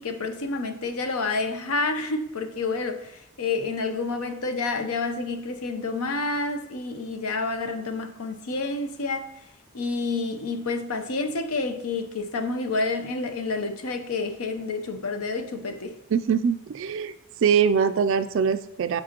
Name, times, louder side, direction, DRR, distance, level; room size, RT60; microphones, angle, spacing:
voice 1, 0.0-3.1 3.4-9.3 9.7-16.0, left 3 dB, 75° left, 0.7 m, -29 dB
voice 2, 16.1-17.1 17.4-19.0, right 6 dB, 60° right, 0.3 m, -23 dB
7.5 x 4.8 x 2.9 m
head